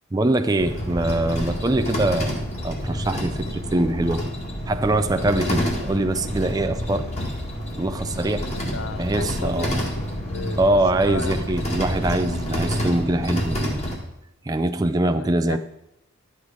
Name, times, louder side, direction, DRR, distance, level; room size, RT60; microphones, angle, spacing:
voice 1, 0.1-4.2 4.7-7.1 7.8-8.5 9.0-9.8 10.6-13.9 14.4-15.6, right 1 dB, 15° right, 8 dB, 0.4 m, -23 dB
sound 1, 0.6-14.0, equal, 30° left, 1.9 m, -28 dB
voice 2, 8.5-10.6 11.0-11.3 15.1-15.6, left 4 dB, 70° left, 12 dB, 0.6 m, -35 dB
11.5 x 8.0 x 4.9 m, 0.86 s
head